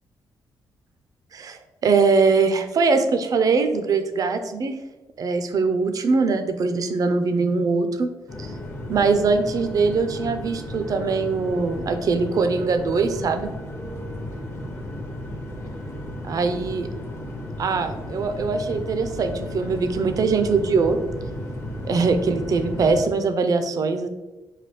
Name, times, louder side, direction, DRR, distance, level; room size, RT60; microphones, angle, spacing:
voice 1, 1.3-4.8 5.2-8.1 8.9-13.5 16.3-16.9 17.6-21.0 21.8-24.1, right 4 dB, 50° right, 8 dB, 0.3 m, -22 dB
sound 1, 8.3-23.1, left 1 dB, 35° left, 0.6 m, -34 dB
3.2 x 2.2 x 3.0 m, 1.1 s
cardioid pair, 80°, 8 cm